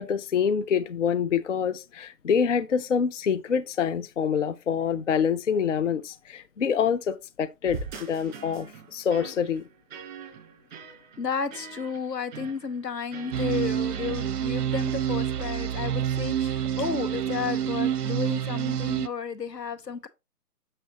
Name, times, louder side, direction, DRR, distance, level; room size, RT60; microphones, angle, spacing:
voice 1, 0.0-9.6, left 7 dB, 50° left, 0.5 m, -26 dB
sound 1, 7.6-15.0, right 5 dB, 30° right, 4.3 m, -43 dB
voice 2, 11.2-20.1, left 6 dB, 85° left, 1.2 m, -32 dB
sound 2, 13.3-19.1, right 10 dB, 70° right, 0.6 m, -28 dB
7.2 x 6.6 x 2.8 m
figure-of-eight pair, 150°, 48 cm